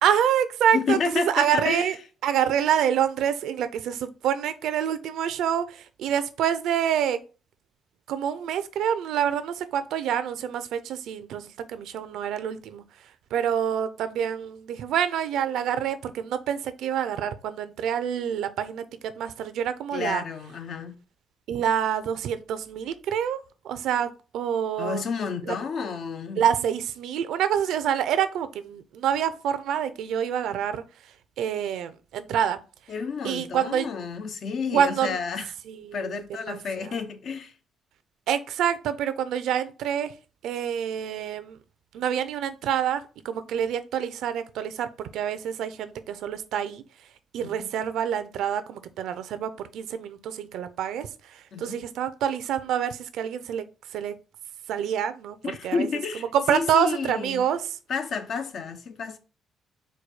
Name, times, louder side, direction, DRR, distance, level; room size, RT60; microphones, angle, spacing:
voice 1, 0.0-2.0 2.2-7.2 8.1-12.8 13.3-20.2 21.5-25.1 25.5-25.6 26.4-32.6 33.2-33.9 34.7-35.2 35.7-36.9 38.3-40.1 40.4-41.6 41.9-46.8 47.3-53.6 53.9-54.1 54.7-55.4 55.6-55.9 56.1-57.7, right 9 dB, 80° right, 0.5 m, -27 dB
voice 2, 0.7-1.9 19.9-20.9 24.8-26.4 32.9-35.5 35.9-37.5 47.4-47.7 51.5-51.8 55.4-56.2 56.5-57.4 57.9-59.2, left 5 dB, 60° left, 0.7 m, -30 dB
4.6 x 2.3 x 4.8 m
cardioid pair, 90°, 0 cm